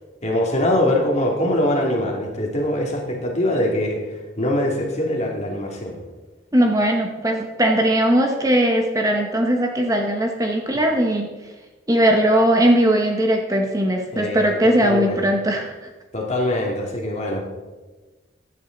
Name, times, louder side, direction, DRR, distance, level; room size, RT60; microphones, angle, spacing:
voice 1, 0.2-4.0 4.4-6.0 14.1-15.3 16.1-17.4, left 1 dB, 35° left, -1 dB, 2.5 m, -23 dB
voice 2, 6.5-11.3 11.9-15.7, right 1 dB, 15° right, 2 dB, 1.0 m, -19 dB
16.0 x 10.5 x 4.0 m, 1.2 s
head